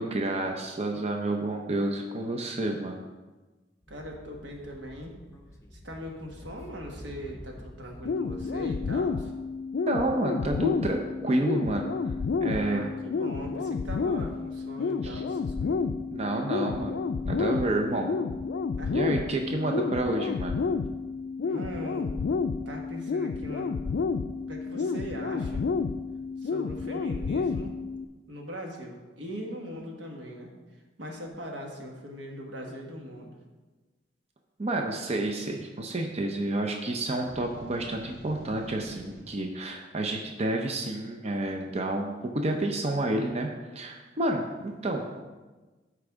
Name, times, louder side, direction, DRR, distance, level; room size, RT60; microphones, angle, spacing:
voice 1, 0.0-3.1 9.9-11.9 12.4-12.8 15.0-15.2 16.1-18.1 18.9-20.6 34.6-45.2, right 1 dB, 35° right, 2 dB, 0.6 m, -29 dB
Speech / Wind, 3.8-8.8, left 1 dB, 15° left, 0.7 m, -48 dB
voice 2, 3.9-5.2 5.7-9.3 12.5-15.8 18.8-19.0 21.4-22.1 22.6-23.7 24.5-25.6 26.4-27.7 28.3-30.5 31.0-33.3, equal, 85° right, 0 dB, 1.5 m, -40 dB
sound 1, 8.0-28.0, left 4 dB, 65° left, 0.3 m, -30 dB
sound 2, 37.3-39.2, equal, 55° right, 1.9 m, -47 dB
13.0 x 4.7 x 3.6 m, 1.2 s
head